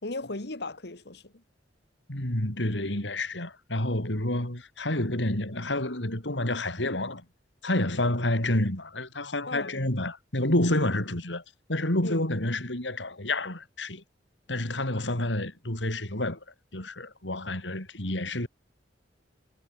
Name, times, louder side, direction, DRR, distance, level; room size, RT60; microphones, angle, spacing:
voice 1, 0.0-1.3 9.5-10.0 12.0-12.3, left 2 dB, 65° left, 2.1 m, -36 dB
voice 2, 2.1-7.2 7.6-11.4 11.7-14.0 14.5-16.4 16.7-18.5, left 1 dB, 85° left, 4.9 m, -29 dB
head